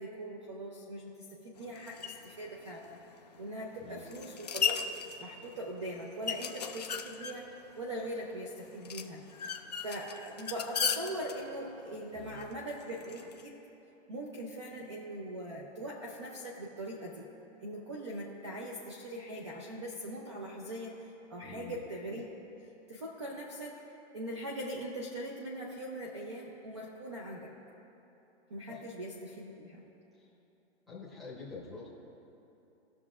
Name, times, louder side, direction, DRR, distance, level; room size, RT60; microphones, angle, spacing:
voice 1, 0.0-3.0 3.4-4.8 5.2-9.5 9.8-13.6 14.1-17.2 17.6-22.3 22.9-27.5 28.5-29.8, right 1 dB, 25° right, -1 dB, 0.5 m, -41 dB
sound 1, 1.6-13.4, left 6 dB, 35° left, 0.4 m, -38 dB
voice 2, 3.8-4.2 12.1-12.4 21.4-21.8 28.7-28.8 30.1-30.3 30.9-31.9, left 4 dB, ahead, -9 dB, 0.9 m, -47 dB
19.5 x 6.5 x 2.4 m, 3.0 s
hypercardioid pair, 175°, 36 cm